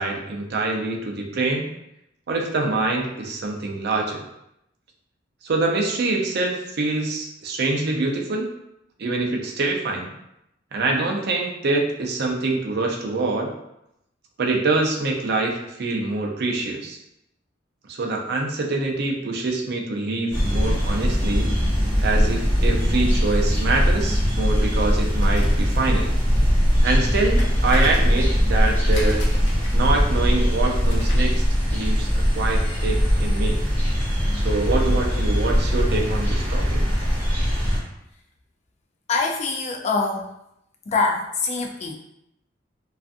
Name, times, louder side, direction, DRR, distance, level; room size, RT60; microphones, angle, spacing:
voice 1, 0.0-1.7 2.3-4.2 5.4-8.5 9.0-10.1 10.7-13.5 14.4-17.0 17.9-21.5 22.0-26.2 26.8-29.2 29.7-31.4 31.7-33.6 34.3-36.8, right 3 dB, 55° right, 0 dB, 0.5 m, -25 dB
sound 1, 20.3-37.8, equal, 10° left, 0.8 m, -21 dB
sound 2, 25.1-31.4, left 1 dB, 65° left, 0.7 m, -39 dB
voice 2, 39.1-40.3 40.9-41.9, left 3 dB, 35° left, 1 dB, 0.3 m, -24 dB
2.4 x 2.4 x 2.5 m, 0.82 s
head